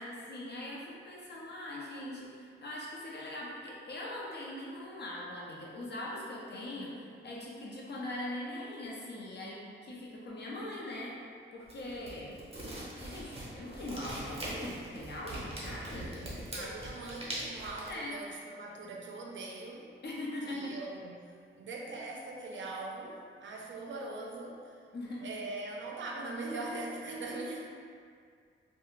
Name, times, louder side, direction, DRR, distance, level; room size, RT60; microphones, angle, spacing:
voice 1, 0.0-11.1 11.5-12.4 12.8-16.7 17.9-18.1 20.0-20.8 24.9-25.3, left 1 dB, 55° left, -4 dB, 0.6 m, -41 dB
sound 1, 11.6-17.9, right 1 dB, 30° right, 0.7 m, -42 dB
voice 2, 16.5-19.9 20.5-21.2 21.6-24.8 25.2-27.7, right 2 dB, 65° right, -1 dB, 0.4 m, -41 dB
2.4 x 2.2 x 3.0 m, 2.1 s
wide cardioid pair, 105°, 21 cm